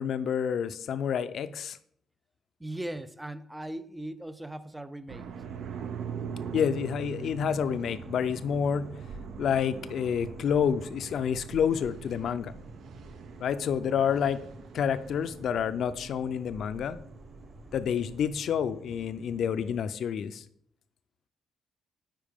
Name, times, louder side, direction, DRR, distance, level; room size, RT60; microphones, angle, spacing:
voice 1, 0.0-1.8 6.5-8.9 9.4-12.5 13.4-14.4 14.7-17.0 17.7-20.4, left 7 dB, 65° left, 12 dB, 0.4 m, -28 dB
voice 2, 2.6-5.3, right 1 dB, 10° right, 14 dB, 0.4 m, -39 dB
sound 1, 5.1-18.3, right 6 dB, 70° right, 0.6 m, -43 dB
sound 2, 5.3-19.8, right 1 dB, 25° right, 1.2 m, -51 dB
8.9 x 4.6 x 3.5 m, 0.67 s
cardioid pair, 90°, 0 cm